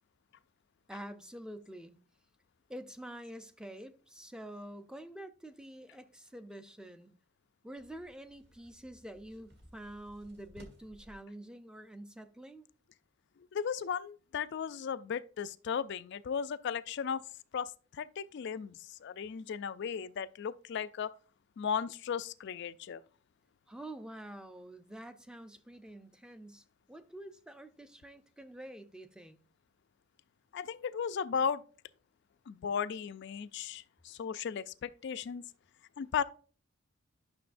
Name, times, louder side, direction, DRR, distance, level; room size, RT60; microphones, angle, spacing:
voice 1, 0.9-2.0 2.7-7.1 7.6-12.7 23.7-29.4, right 1 dB, 5° right, 0.5 m, -47 dB
sound 1, 7.8-11.2, equal, 50° right, 1.7 m, -59 dB
voice 2, 13.5-17.2 17.5-21.1 21.6-23.0 30.5-31.6 32.5-35.4 36.0-36.2, left 7 dB, 55° left, 0.3 m, -36 dB
11.5 x 6.1 x 2.5 m
head